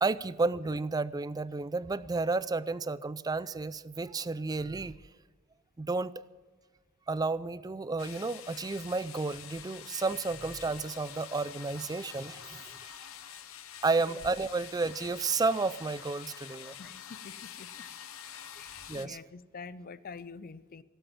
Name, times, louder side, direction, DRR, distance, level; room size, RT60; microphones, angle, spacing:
voice 1, 0.0-5.0 5.8-6.2 7.1-13.0 13.8-16.8 18.9-19.2, right 3 dB, 20° right, 17 dB, 0.4 m, -32 dB
sound 1, 8.0-19.1, left 9 dB, 80° left, 0.8 m, -47 dB
voice 2, 16.6-18.0 18.5-20.8, left 4 dB, 45° left, 15 dB, 0.5 m, -47 dB
17.0 x 7.9 x 8.9 m, 1.4 s
head